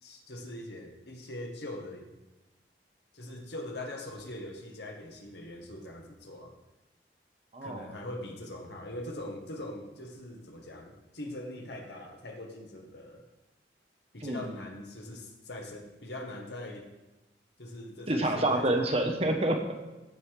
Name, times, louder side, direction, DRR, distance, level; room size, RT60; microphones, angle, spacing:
voice 1, 0.0-2.2 3.1-6.5 7.6-13.3 14.1-16.9 17.6-19.0, left 1 dB, 60° left, 2 dB, 1.8 m, -42 dB
voice 2, 7.5-8.0 14.2-14.4 18.1-19.9, right 1 dB, 35° right, 3 dB, 1.2 m, -28 dB
15.5 x 5.6 x 4.9 m, 1.1 s
head